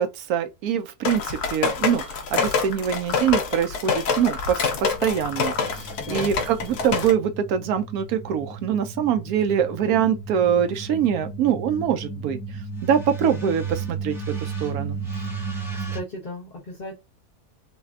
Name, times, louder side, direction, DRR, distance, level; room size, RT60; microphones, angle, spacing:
voice 1, 0.0-12.4 12.8-14.1 14.4-15.0, right 8 dB, 75° right, 1.1 m, -24 dB
sound 1, 1.0-7.1, left 5 dB, 85° left, 1.3 m, -26 dB
sound 2, 4.9-16.0, right 4 dB, 5° right, 0.4 m, -34 dB
voice 2, 15.7-17.0, left 2 dB, 40° left, 0.8 m, -36 dB
4.1 x 2.2 x 2.4 m
omnidirectional pair, 1.6 m